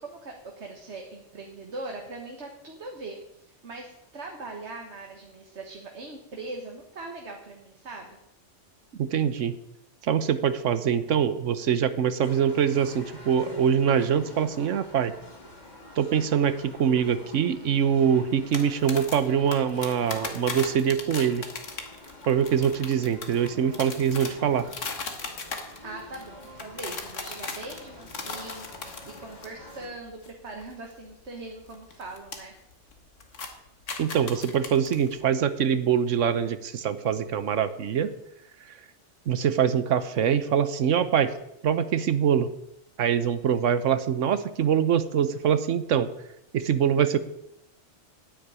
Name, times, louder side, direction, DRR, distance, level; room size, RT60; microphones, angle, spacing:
voice 1, 0.0-8.2 25.8-32.5, right 2 dB, 65° right, 1 dB, 1.8 m, -41 dB
voice 2, 9.0-9.5 10.0-15.1 16.0-21.4 22.3-24.7 34.0-38.1 39.3-41.3 41.6-42.5 43.0-46.1 46.5-47.2, right 8 dB, 85° right, 13 dB, 1.2 m, -24 dB
sound 1, 12.2-29.9, left 2 dB, 35° left, 2.5 m, -47 dB
sound 2, 18.5-29.8 30.1-30.3 30.6-32.4 32.7-32.9 33.2-35.2, left 4 dB, 90° left, 1.9 m, -37 dB
9.8 x 9.3 x 8.8 m, 0.83 s
omnidirectional pair, 1.2 m